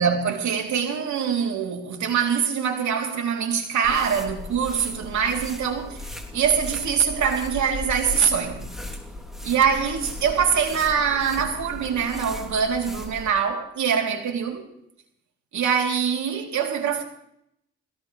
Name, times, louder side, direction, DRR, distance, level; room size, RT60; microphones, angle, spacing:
voice 1, 0.0-8.7 9.4-14.7 15.5-17.0, right 7 dB, 70° right, 3.5 m, -24 dB
sound 1, 3.8-13.4, left 1 dB, ahead, 3.4 m, -37 dB
21.0 x 18.5 x 3.4 m
cardioid pair, 90°, 30 cm